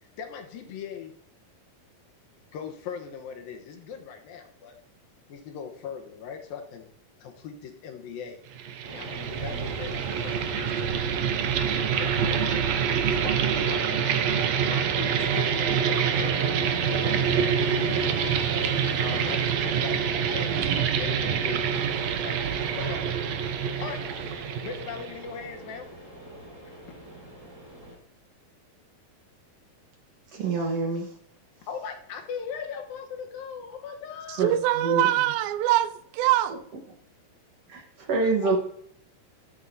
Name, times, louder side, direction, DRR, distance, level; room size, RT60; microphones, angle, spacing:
voice 1, 0.0-1.1 2.5-4.8 5.3-6.9 7.2-8.4 8.9-18.3 19.0-21.6 21.9-24.0 24.6-25.9 26.6-27.0 31.7-34.6 38.2-38.6, left 7 dB, 80° left, 2.9 m, -40 dB
sound 1, 8.5-25.2, right 8 dB, 75° right, 1.6 m, -26 dB
Train, 8.8-28.0, right 1 dB, 30° right, 6.6 m, -42 dB
sound 2, 15.0-19.5, left 4 dB, 50° left, 1.5 m, -40 dB
voice 2, 30.3-31.1 34.4-34.5 34.8-35.0 37.7-38.6, right 3 dB, 55° right, 2.0 m, -26 dB
voice 3, 34.3-36.6, right 14 dB, 90° right, 2.5 m, -23 dB
13.5 x 12.5 x 2.8 m
omnidirectional pair, 4.1 m